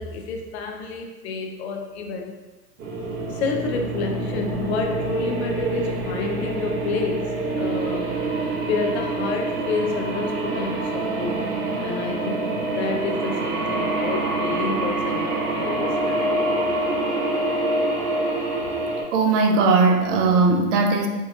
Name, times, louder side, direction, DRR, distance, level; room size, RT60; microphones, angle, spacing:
voice 1, 0.0-2.4 3.3-8.2 8.6-16.7, left 4 dB, 45° left, 3 dB, 0.5 m, -30 dB
sound 1, 2.8-19.0, right 2 dB, 70° right, 1.0 m, -26 dB
voice 2, 19.1-21.1, right 3 dB, 50° right, 4 dB, 0.6 m, -18 dB
5.0 x 2.4 x 2.4 m, 1.2 s
hypercardioid pair, 120°, 47 cm